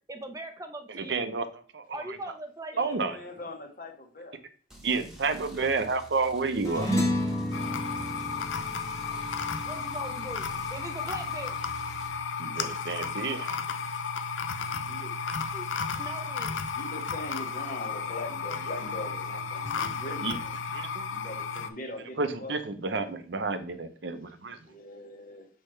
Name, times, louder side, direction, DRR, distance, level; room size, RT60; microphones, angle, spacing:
voice 1, 0.1-1.3 1.9-3.1 9.6-11.6 15.5-15.7 16.0-16.5, right 1 dB, 20° right, 6 dB, 0.5 m, -40 dB
voice 2, 0.9-1.4 1.7-2.2 2.8-3.2 4.8-6.9 12.4-13.6 20.2-20.4 20.7-21.0 22.2-24.6, right 4 dB, 70° right, 9 dB, 0.7 m, -30 dB
voice 3, 2.7-4.4 14.8-15.2 16.7-20.5 21.1-22.5 24.6-25.5, left 1 dB, 45° left, 3 dB, 1.2 m, -41 dB
sound 1, 4.7-12.1, right 1 dB, 5° right, 1.2 m, -49 dB
sound 2, 6.6-11.3, equal, 15° left, 1.2 m, -32 dB
sound 3, 7.5-21.7, left 5 dB, 90° left, 0.6 m, -33 dB
6.4 x 4.6 x 3.2 m, 0.43 s
head